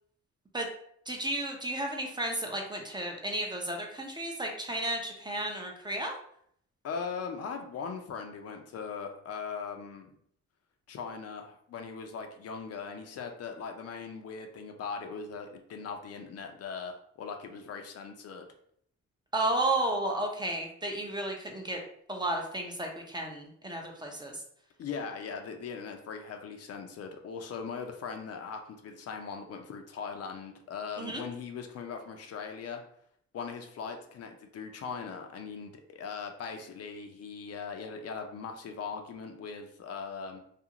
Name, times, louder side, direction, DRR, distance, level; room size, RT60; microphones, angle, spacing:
voice 1, 1.1-6.1 19.3-21.8 22.1-24.4 31.0-31.2, right 1 dB, 15° right, 1 dB, 0.5 m, -33 dB
voice 2, 6.8-10.2 10.9-18.4 24.8-32.8 33.3-40.4, left 5 dB, 55° left, 4 dB, 0.5 m, -40 dB
2.5 x 2.4 x 2.8 m, 0.66 s
cardioid pair, 90°, 30 cm